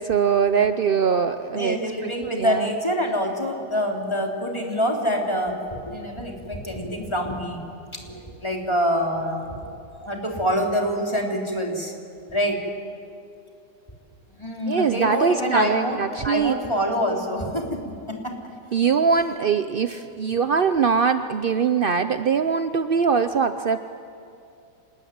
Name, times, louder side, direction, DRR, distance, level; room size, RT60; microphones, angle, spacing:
voice 1, 0.0-1.8 2.4-2.6 14.7-16.5 18.7-23.8, right 6 dB, 70° right, 9 dB, 0.5 m, -22 dB
voice 2, 1.5-7.6 7.9-9.6 9.9-11.9 12.3-12.6 14.4-17.8 18.1-18.4 18.8-19.2, equal, 15° left, 0 dB, 3.6 m, -26 dB
27.5 x 20.0 x 9.4 m, 2.4 s
omnidirectional pair, 1.9 m